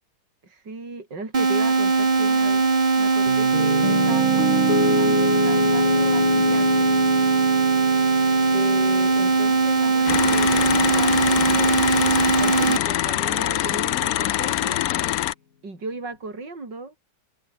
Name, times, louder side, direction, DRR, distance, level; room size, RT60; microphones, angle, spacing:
voice 1, 0.4-6.9 8.5-11.8 12.4-14.8 15.6-16.9, right 3 dB, 65° right, 5.8 m, -36 dB
sound 1, 1.3-12.8, right 4 dB, 25° right, 1.3 m, -20 dB
Piano, 3.3-11.4, left 7 dB, 50° left, 1.6 m, -27 dB
sound 2, 10.1-15.3, left 13 dB, 70° left, 0.9 m, -24 dB
omnidirectional pair, 2.1 m